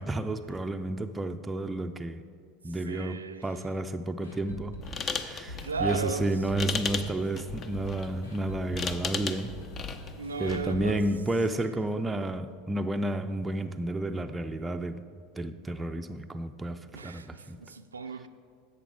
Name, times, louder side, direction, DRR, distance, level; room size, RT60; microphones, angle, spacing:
voice 1, 0.0-2.2 2.6-9.6 10.4-15.1 15.4-17.6, right 2 dB, 15° right, 6 dB, 0.4 m, -31 dB
voice 2, 2.7-3.4 5.6-6.3 6.6-6.7 10.2-11.0 16.9-18.3, right 4 dB, 85° right, 8 dB, 0.4 m, -35 dB
sound 1, 4.2-12.0 12.2-12.3 12.7-12.8, left 2 dB, 85° left, 1.5 m, -43 dB
sound 2, 4.8-10.7, left 5 dB, 35° left, 0.7 m, -37 dB
11.0 x 7.6 x 4.8 m, 2.1 s
figure-of-eight pair, 80°, 0 cm